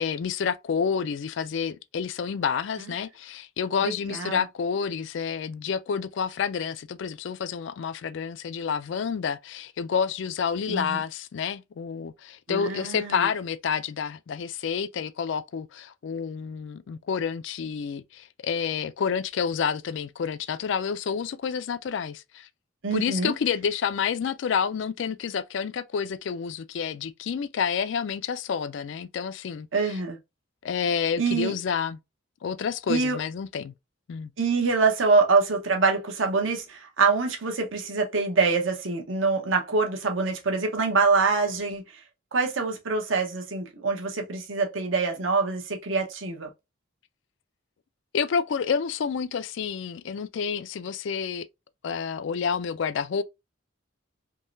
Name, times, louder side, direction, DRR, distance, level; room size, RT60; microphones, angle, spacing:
voice 1, 0.0-22.5 22.9-30.0 30.6-32.0 32.4-33.7 34.1-34.3 48.1-51.5 51.8-53.2, left 6 dB, 60° left, 0.3 m, -29 dB
voice 2, 3.8-4.4 10.7-11.0 12.5-13.3 22.8-23.3 29.7-30.2 31.2-31.5 32.9-33.2 34.4-42.0 42.3-46.5, right 4 dB, 70° right, 1.0 m, -25 dB
3.7 x 3.0 x 2.6 m
head